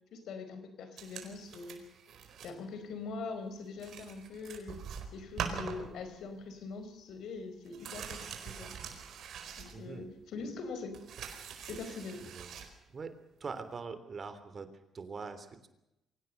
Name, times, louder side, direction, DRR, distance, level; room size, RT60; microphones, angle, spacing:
voice 1, 0.1-1.8 2.4-4.8 5.1-8.7 9.6-11.0 11.6-12.3, left 4 dB, 75° left, 9 dB, 4.9 m, -43 dB
sound 1, 1.0-2.6 2.9-3.1 3.5-3.6 3.8-6.4 6.7-6.8 7.1-10.2 10.6-12.7 13.7-13.8, right 7 dB, 70° right, 4.5 m, -44 dB
voice 2, 9.7-10.1 11.8-12.5 12.9-15.7, right 4 dB, 40° right, 11 dB, 3.4 m, -44 dB
24.0 x 18.0 x 6.8 m, 0.87 s
cardioid pair, 95°, 0 cm